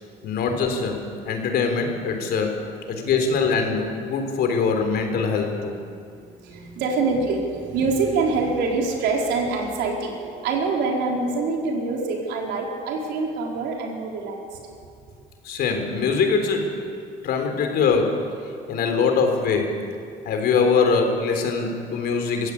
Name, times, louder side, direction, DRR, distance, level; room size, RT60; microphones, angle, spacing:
voice 1, 0.2-1.0 1.3-2.6 2.9-5.8 15.4-16.7 17.2-18.2 18.7-19.8 20.2-22.5, left 5 dB, 70° left, 4 dB, 3.6 m, -22 dB
voice 2, 6.1-14.4, right 3 dB, 85° right, 0 dB, 4.2 m, -25 dB
23.0 x 15.5 x 8.4 m, 2.4 s
cardioid pair, 110°, 17 cm